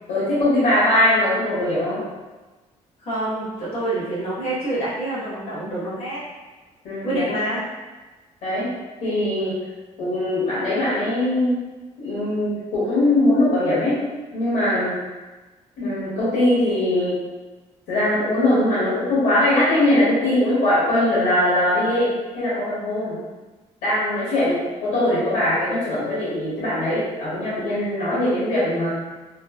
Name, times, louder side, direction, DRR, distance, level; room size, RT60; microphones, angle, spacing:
voice 1, 0.1-2.0 6.8-7.3 8.4-8.7 9.0-9.6 10.0-11.6 12.0-14.0 14.3-15.0 15.8-17.2 17.9-22.1 22.3-23.2 23.8-28.9, left 1 dB, 80° left, -10 dB, 1.3 m, -21 dB
voice 2, 3.0-6.2 7.0-7.6, right 1 dB, 55° left, -9 dB, 1.1 m, -26 dB
3.1 x 2.1 x 2.3 m, 1.2 s
cardioid pair, 180°, 12 cm